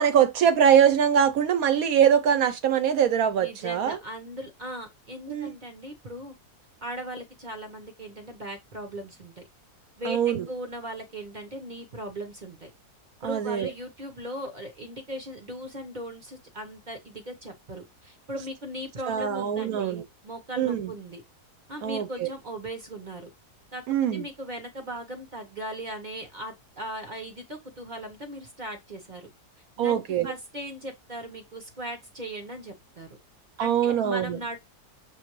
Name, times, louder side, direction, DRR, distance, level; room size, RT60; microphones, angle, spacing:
voice 1, 0.0-4.0 5.3-5.5 10.0-10.5 13.2-13.7 19.1-20.0 20.6-20.9 21.8-22.3 23.9-24.2 29.8-30.3 33.6-34.4, right 8 dB, 70° right, 1.1 m, -23 dB
voice 2, 3.3-6.3 6.8-9.5 10.0-12.7 13.2-21.2 21.7-23.3 23.7-23.8 24.1-29.3 29.8-33.2 33.6-34.6, right 1 dB, 40° right, 0.8 m, -38 dB
6.1 x 2.6 x 3.0 m
omnidirectional pair, 1.6 m